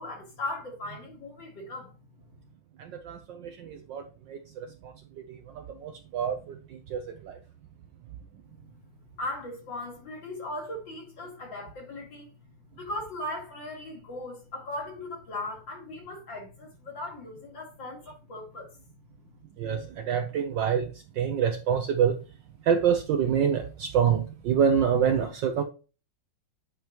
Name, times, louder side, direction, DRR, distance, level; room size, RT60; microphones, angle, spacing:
voice 1, 0.0-1.9 9.2-12.3 12.8-18.7, left 2 dB, 60° left, 3.2 m, -38 dB
voice 2, 3.0-4.0 4.3-4.4 5.8-6.6 6.9-7.0 19.6-19.8 20.1-20.9 21.2-22.2 22.7-25.6, right 8 dB, 70° right, 1.3 m, -25 dB
9.2 x 5.2 x 2.9 m
omnidirectional pair, 2.4 m